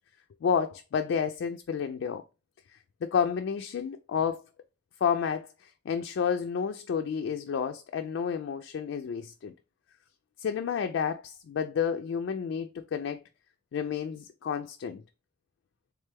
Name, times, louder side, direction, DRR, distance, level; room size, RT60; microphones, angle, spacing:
voice 1, 0.4-2.2 3.0-4.4 5.0-9.5 10.4-13.2 13.7-15.0, left 7 dB, 75° left, 0.3 m, -30 dB
3.6 x 3.2 x 3.3 m
head